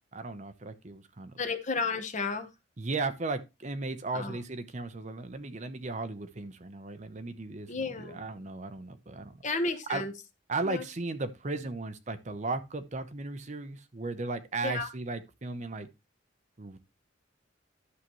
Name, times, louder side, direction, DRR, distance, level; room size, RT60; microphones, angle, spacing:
voice 1, 0.1-1.3 2.8-9.4 9.9-10.0 10.5-15.9 16.6-16.8, right 3 dB, 40° right, 0.8 m, -36 dB
voice 2, 1.4-2.5 4.1-4.4 7.7-8.2 9.4-10.1 10.6-10.9 14.6-14.9, left 3 dB, 40° left, 1.1 m, -32 dB
11.5 x 6.8 x 3.1 m
head